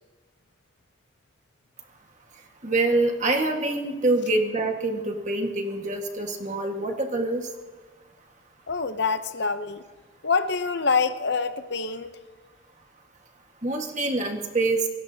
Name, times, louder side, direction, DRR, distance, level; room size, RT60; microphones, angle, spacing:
voice 1, 2.6-7.4 13.6-14.8, right 2 dB, 40° right, 3 dB, 1.6 m, -25 dB
voice 2, 8.7-9.9 10.2-12.2, left 4 dB, 60° left, 10 dB, 0.7 m, -26 dB
28.0 x 18.0 x 2.8 m, 1.3 s
head